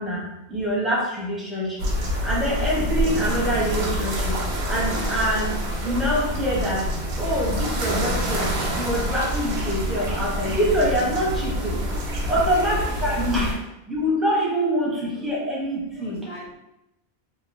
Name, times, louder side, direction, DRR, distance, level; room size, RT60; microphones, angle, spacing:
voice 1, 0.0-1.9 2.2-4.3 4.7-5.5 5.8-6.9 7.2-11.8 12.3-13.6 13.9-16.3, equal, ahead, -6 dB, 0.4 m, -25 dB
sound 1, 1.8-13.5, equal, 85° right, 0.9 m, -26 dB
Bowed string instrument, 7.4-12.7, equal, 80° left, 1.3 m, -46 dB
voice 2, 11.3-11.7 12.5-13.0 15.1-15.3 15.9-16.6, equal, 45° left, -8 dB, 0.7 m, -40 dB
2.9 x 2.1 x 2.5 m, 0.90 s
omnidirectional pair, 1.1 m